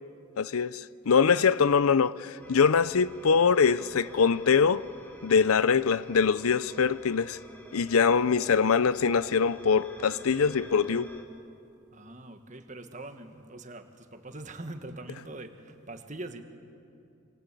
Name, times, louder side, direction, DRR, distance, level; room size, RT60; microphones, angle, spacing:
voice 1, 0.4-4.8 5.2-7.4 7.7-11.1, left 6 dB, 90° left, 0.6 m, -23 dB
voice 2, 1.2-1.5 11.9-16.4, right 2 dB, 35° right, 1.6 m, -43 dB
sound 1, 2.4-11.2, equal, 10° left, 2.6 m, -48 dB
27.0 x 26.0 x 8.4 m
head